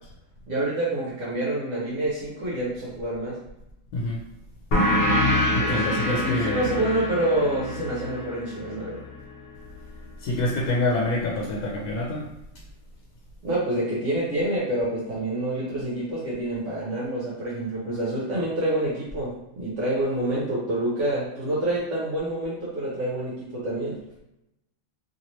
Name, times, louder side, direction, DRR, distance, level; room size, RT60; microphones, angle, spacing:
voice 1, 0.5-3.4 5.6-9.0 13.4-24.0, right 1 dB, 65° right, -6 dB, 1.0 m, -27 dB
sound 1, 4.7-9.9, left 1 dB, 60° left, 0.8 m, -26 dB
voice 2, 5.5-6.7 10.2-12.3, left 2 dB, 80° left, -3 dB, 1.0 m, -26 dB
2.8 x 2.8 x 2.9 m, 0.86 s
omnidirectional pair, 1.5 m